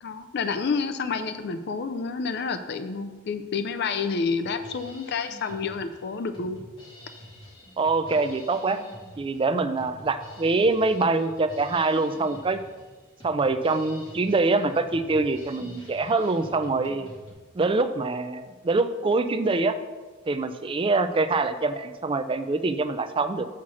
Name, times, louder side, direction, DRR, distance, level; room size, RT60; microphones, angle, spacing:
voice 1, 0.0-6.6, left 5 dB, 55° left, 9 dB, 0.4 m, -29 dB
Drum kit, 4.0-17.3, equal, 25° left, 2.1 m, -47 dB
voice 2, 7.8-8.8 9.2-12.6 13.2-17.1 17.5-19.8 20.3-23.5, right 3 dB, 25° right, 10 dB, 0.4 m, -24 dB
6.1 x 5.8 x 6.2 m, 1.4 s
head